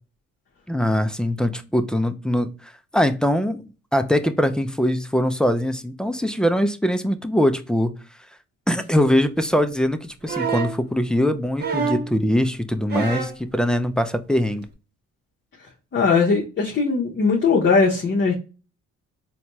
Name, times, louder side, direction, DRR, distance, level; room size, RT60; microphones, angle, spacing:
voice 1, 0.7-3.6 3.9-7.9 8.7-14.7, equal, 5° left, 0.4 m, -22 dB
sound 1, 10.3-10.8 11.6-12.1 12.9-13.4 14.6-14.7, right 5 dB, 35° right, 1.0 m, -26 dB
voice 2, 15.9-18.3, left 4 dB, 40° left, 0.9 m, -19 dB
4.1 x 2.2 x 2.9 m
cardioid pair, 90°, 30 cm